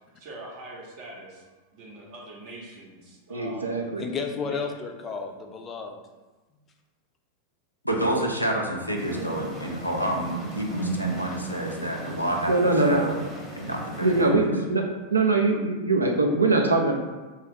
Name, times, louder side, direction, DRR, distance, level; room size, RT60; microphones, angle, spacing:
voice 1, 0.2-1.4 1.7-4.0 4.5-4.6, right 1 dB, 45° right, -3 dB, 0.7 m, -43 dB
voice 2, 3.3-4.0 9.1-9.3 12.5-13.3 14.0-14.8 15.1-16.9, right 2 dB, 80° right, 2 dB, 0.4 m, -22 dB
voice 3, 4.0-6.0, left 5 dB, 25° left, 3 dB, 0.4 m, -32 dB
voice 4, 7.8-13.2 13.6-14.5, right 1 dB, 90° left, 0 dB, 0.4 m, -29 dB
sound 1, 8.9-14.3, right 2 dB, ahead, 0.8 m, -36 dB
3.3 x 2.3 x 3.2 m, 1.2 s
figure-of-eight pair, 90°, 0 cm